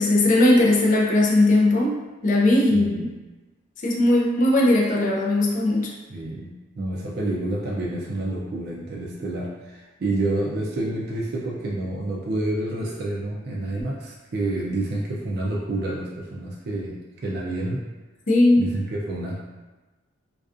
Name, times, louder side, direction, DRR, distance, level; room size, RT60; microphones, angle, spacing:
voice 1, 0.0-2.9 3.8-5.9 18.3-18.7, left 1 dB, 40° left, -2 dB, 0.4 m, -19 dB
voice 2, 2.7-3.1 6.1-17.8 18.6-19.4, right 2 dB, 50° right, -3 dB, 0.3 m, -29 dB
2.4 x 2.3 x 2.4 m, 1.2 s
head